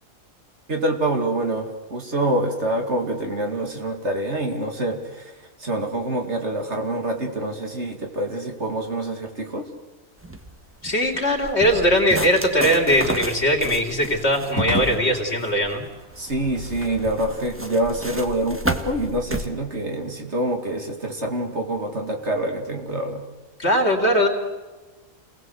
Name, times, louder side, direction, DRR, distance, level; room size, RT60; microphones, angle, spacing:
voice 1, 0.7-5.3 5.6-9.7 16.2-23.2, right 1 dB, 55° right, 3 dB, 3.0 m, -26 dB
sound 1, 10.2-19.5, right 1 dB, 10° right, 1.6 m, -32 dB
voice 2, 10.8-15.8 23.6-24.3, equal, 50° left, 2 dB, 3.8 m, -20 dB
sound 2, 11.6-17.9, equal, 80° right, 5.8 m, -35 dB
28.5 x 19.0 x 8.0 m, 1.3 s
omnidirectional pair, 1.5 m